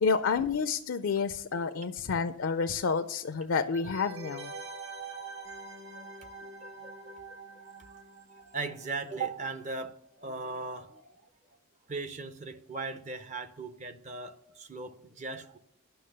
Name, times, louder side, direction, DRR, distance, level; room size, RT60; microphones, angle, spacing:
voice 1, 0.0-4.5, left 5 dB, 65° left, 0.4 m, -29 dB
sound 1, 3.7-9.2 9.5-9.6, right 3 dB, 65° right, 0.9 m, -45 dB
voice 2, 5.9-6.3 6.6-8.0 8.4-11.2 11.9-15.6, right 3 dB, 30° right, 0.5 m, -39 dB
10.0 x 6.0 x 6.6 m
head